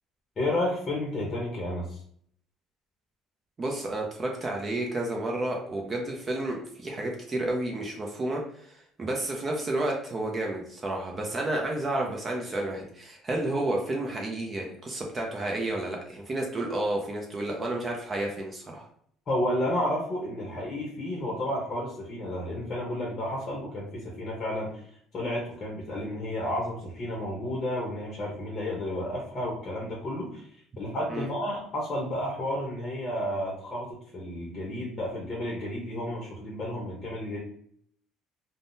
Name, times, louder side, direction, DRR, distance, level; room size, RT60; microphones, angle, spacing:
voice 1, 0.4-2.0 19.3-24.8 25.1-30.5 30.8-37.4, left 1 dB, 25° left, -3 dB, 0.8 m, -31 dB
voice 2, 3.6-18.9 31.1-31.3, right 1 dB, 25° right, 0 dB, 0.5 m, -31 dB
3.5 x 2.0 x 2.6 m, 0.63 s
cardioid pair, 150°, 0 cm